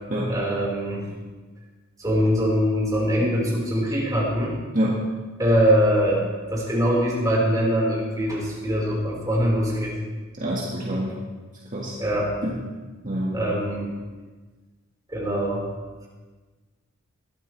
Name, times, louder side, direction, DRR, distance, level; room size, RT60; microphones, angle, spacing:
voice 1, 0.3-1.0 2.0-4.5 5.4-6.2 6.5-9.9 12.0-12.3 13.3-13.9 15.1-15.6, equal, 15° right, -5 dB, 4.7 m, -22 dB
voice 2, 10.4-11.1 11.7-11.9 12.4-12.6 13.0-13.4, right 1 dB, 40° right, -5 dB, 1.9 m, -26 dB
22.0 x 13.0 x 3.4 m, 1.3 s
head